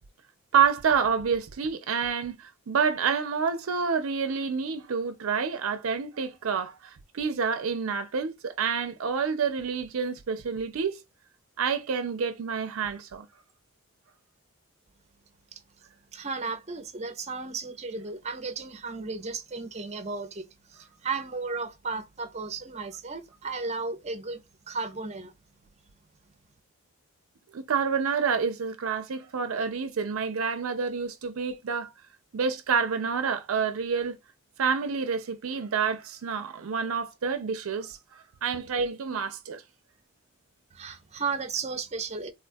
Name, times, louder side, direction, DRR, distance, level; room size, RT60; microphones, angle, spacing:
voice 1, 0.5-11.0 11.6-13.3 27.5-31.9 32.3-34.2 34.6-39.6, right 6 dB, 80° right, 0.5 m, -28 dB
voice 2, 16.1-25.3 40.7-42.3, right 4 dB, 30° right, 0.6 m, -34 dB
3.7 x 2.3 x 2.5 m
head